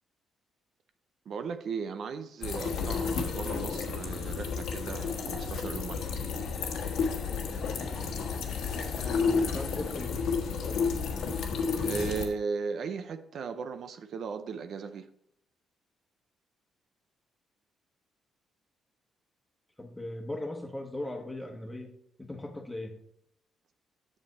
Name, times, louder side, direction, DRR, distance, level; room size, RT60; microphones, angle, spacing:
voice 1, 1.3-6.2 11.8-15.1, right 5 dB, 65° right, 9 dB, 0.5 m, -36 dB
sound 1, 2.4-12.3, left 5 dB, 75° left, 1.3 m, -31 dB
voice 2, 9.0-10.2 19.8-21.9 22.2-22.9, left 1 dB, 10° left, 3 dB, 1.4 m, -38 dB
7.5 x 6.5 x 4.2 m, 0.71 s
cardioid pair, 90°, 0 cm